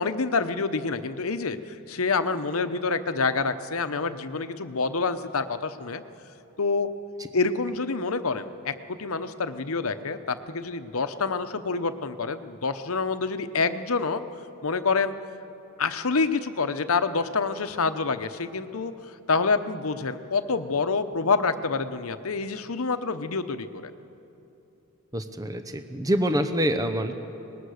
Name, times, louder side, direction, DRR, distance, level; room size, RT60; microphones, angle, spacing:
voice 1, 0.0-6.0 6.6-6.9 7.3-14.2 14.6-15.1 15.8-18.9 19.3-23.9, left 4 dB, 80° left, 10 dB, 0.9 m, -27 dB
voice 2, 25.1-27.1, equal, 15° right, 8 dB, 0.8 m, -26 dB
24.0 x 19.5 x 6.5 m, 2.9 s
head